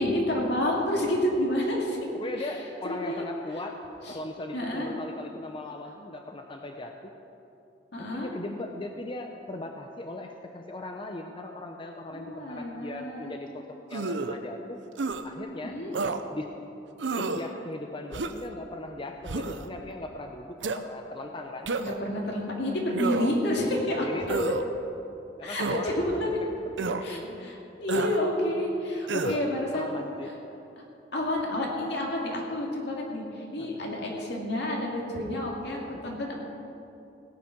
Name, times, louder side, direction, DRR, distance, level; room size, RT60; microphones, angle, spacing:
voice 1, 0.0-2.0 2.4-2.5 2.8-3.2 4.0-4.2 4.5-4.9 7.9-8.3 12.1-13.4 15.6-16.0 21.8-24.1 25.4-26.4 27.0-30.0 31.1-36.3, left 1 dB, 65° left, -1 dB, 2.5 m, -29 dB
voice 2, 2.1-3.8 4.1-7.1 8.0-14.8 15.2-15.8 16.3-16.5 17.2-21.7 23.9-24.6 25.4-26.5 26.8-27.5 29.1-29.4 29.7-30.3 33.6-33.9 35.9-36.2, left 2 dB, 30° left, 4 dB, 0.6 m, -38 dB
sound 1, 13.9-14.4 15.0-15.2 15.9-16.2 17.0-17.5 18.1-18.5 19.2-19.7 20.6-20.8 21.7-22.1 22.9-23.4 24.3-24.6 25.6-25.9 26.8-27.0 27.9-28.2 29.1-29.4, right 3 dB, 85° right, 0.7 m, -30 dB
16.5 x 9.0 x 5.9 m, 2.8 s
head